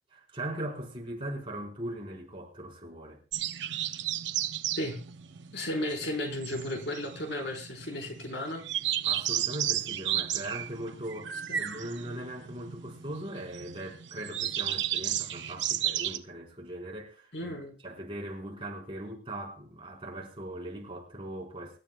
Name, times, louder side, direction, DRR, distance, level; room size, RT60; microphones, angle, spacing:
voice 1, 0.1-3.2 9.0-17.6 17.8-21.8, right 1 dB, 30° right, 4.3 m, -39 dB
sound 1, 3.3-16.2, right 11 dB, 85° right, 0.8 m, -34 dB
voice 2, 5.5-8.6 11.5-11.6 17.3-17.7, left 1 dB, 70° left, 4.2 m, -34 dB
24.5 x 12.0 x 2.2 m
head